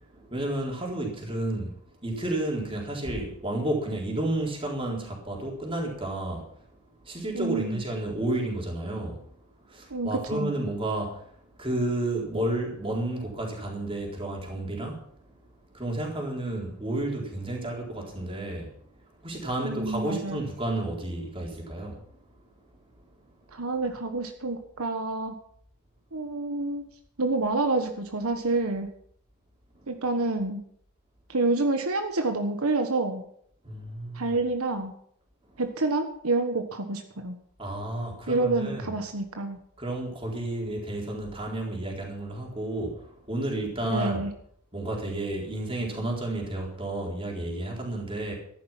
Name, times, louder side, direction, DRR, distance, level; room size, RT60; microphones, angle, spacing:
voice 1, 0.1-1.8 2.0-6.5 7.0-9.2 9.7-11.2 11.6-15.0 15.7-18.8 19.2-22.0 33.6-34.3 37.6-38.9 39.8-44.3 44.7-48.3, right 1 dB, 25° right, -1 dB, 4.1 m, -31 dB
voice 2, 7.3-7.8 9.9-10.5 19.6-20.4 23.5-25.3 26.1-26.8 27.2-28.9 29.9-30.6 31.3-33.2 34.1-34.9 35.6-37.3 38.3-39.6 43.8-44.3, right 2 dB, 80° right, 6 dB, 1.4 m, -28 dB
14.0 x 11.5 x 5.9 m, 0.67 s
head